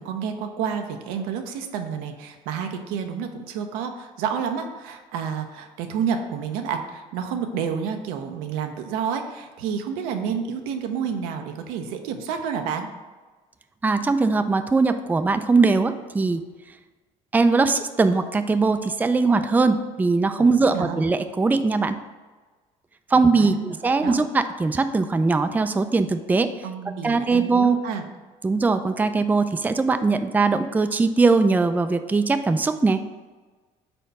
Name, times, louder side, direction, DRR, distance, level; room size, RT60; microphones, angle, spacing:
voice 1, 0.0-12.9 20.4-21.0 23.1-24.2 26.6-28.0, right 7 dB, 85° right, 5 dB, 0.7 m, -30 dB
voice 2, 13.8-16.4 17.3-22.0 23.1-26.5 27.0-27.8 28.4-33.0, right 3 dB, 10° right, 9 dB, 0.4 m, -20 dB
4.5 x 4.3 x 5.3 m, 1.3 s
supercardioid pair, 85°, 14 cm